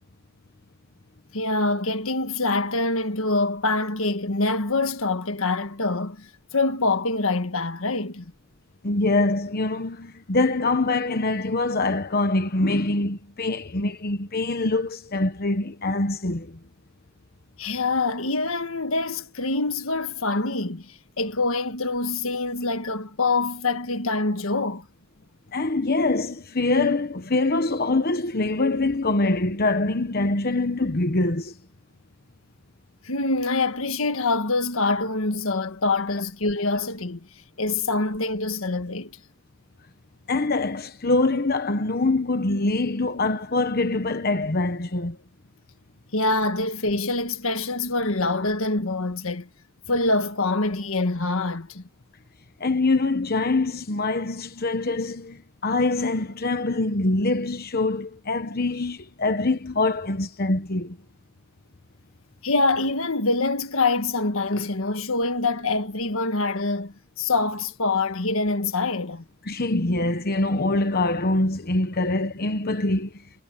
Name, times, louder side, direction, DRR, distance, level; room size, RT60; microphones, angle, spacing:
voice 1, 1.3-8.3 17.6-24.9 33.0-37.3 37.6-39.1 46.1-49.5 49.9-51.8 62.4-69.2, left 3 dB, 75° left, 1.6 m, -25 dB
voice 2, 8.8-16.6 25.5-31.6 40.3-45.2 52.6-61.0 69.4-73.2, left 2 dB, 45° left, 1.1 m, -24 dB
head